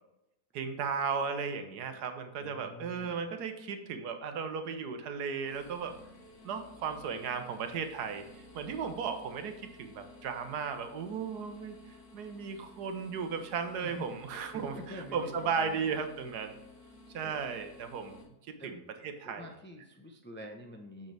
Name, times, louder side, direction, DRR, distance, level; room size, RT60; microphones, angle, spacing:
voice 1, 0.5-5.9 6.4-11.8 12.1-16.5 17.1-18.2 18.6-19.5, right 6 dB, 90° right, 7 dB, 1.4 m, -35 dB
voice 2, 2.4-3.4 13.8-14.2 14.5-16.0 17.2-17.3 18.6-18.7 19.2-21.1, left 1 dB, 15° left, 2 dB, 0.4 m, -47 dB
sound 1, 5.4-18.2, left 2 dB, 80° left, 2.2 m, -55 dB
7.1 x 6.4 x 3.3 m, 0.88 s
omnidirectional pair, 1.7 m